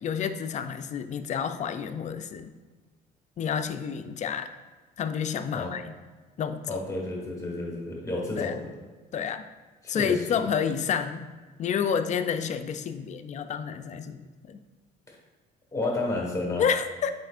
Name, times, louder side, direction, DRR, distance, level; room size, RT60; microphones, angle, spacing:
voice 1, 0.0-2.5 3.4-4.5 5.0-5.9 6.4-6.8 8.4-8.6 9.1-9.4 9.9-11.3 11.6-14.6 16.6-17.1, left 7 dB, 45° left, 9 dB, 0.4 m, -29 dB
voice 2, 6.7-8.7 9.8-10.4 15.1-15.2 15.7-16.6, left 2 dB, 20° left, -1 dB, 1.5 m, -31 dB
7.8 x 4.9 x 2.5 m, 1.4 s
cardioid pair, 110°, 17 cm